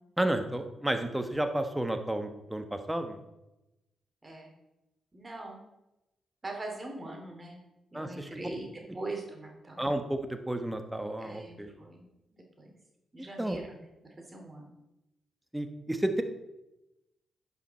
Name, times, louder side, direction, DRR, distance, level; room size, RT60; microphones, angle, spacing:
voice 1, 0.2-3.2 7.9-8.4 9.8-11.7 13.4-13.6 15.5-16.2, right 1 dB, 10° right, 7 dB, 1.3 m, -31 dB
voice 2, 5.1-5.6 6.4-7.6 7.9-9.8 11.2-12.1 12.6-12.7 13.1-13.8 14.0-14.7, right 2 dB, 30° right, 1 dB, 2.7 m, -42 dB
10.5 x 5.6 x 4.2 m, 0.94 s
supercardioid pair, 50°, 0 cm